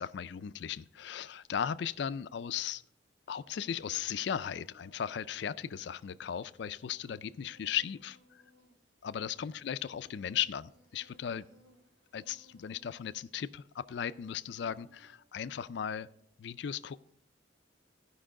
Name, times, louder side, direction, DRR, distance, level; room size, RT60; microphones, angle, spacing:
voice 1, 0.0-2.8 3.3-8.2 9.0-11.5 12.1-16.1 16.4-17.0, left 8 dB, 60° left, 15 dB, 0.3 m, -37 dB
Insect, 3.4-15.1, left 1 dB, 80° right, 3.2 m, -65 dB
15.0 x 5.4 x 3.7 m, 0.70 s
head